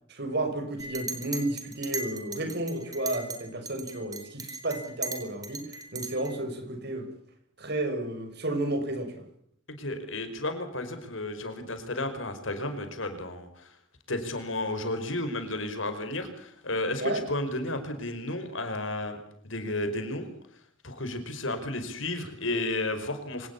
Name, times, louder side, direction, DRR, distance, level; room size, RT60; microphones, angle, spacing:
voice 1, 0.1-5.6 5.9-7.1 7.6-9.1 17.0-17.2, right 1 dB, 55° right, 7 dB, 6.3 m, -32 dB
Chink clink, 0.8-3.4 3.7-6.3, right 3 dB, 20° right, 4.2 m, -37 dB
voice 2, 9.8-13.7 14.1-19.2 19.4-20.3 20.8-23.5, left 2 dB, 80° left, 8 dB, 5.3 m, -32 dB
25.5 x 19.5 x 7.2 m, 0.68 s
head